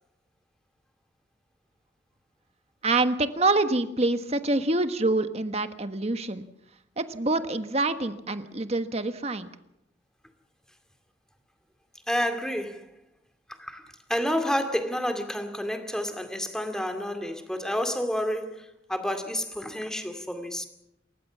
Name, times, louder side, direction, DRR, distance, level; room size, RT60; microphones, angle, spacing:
voice 1, 2.8-6.4 7.0-9.5, right 2 dB, 35° right, 9 dB, 1.4 m, -26 dB
voice 2, 12.1-12.9 13.6-13.8 14.1-20.6, equal, 5° left, 6 dB, 2.3 m, -29 dB
28.0 x 15.0 x 7.3 m, 0.83 s
head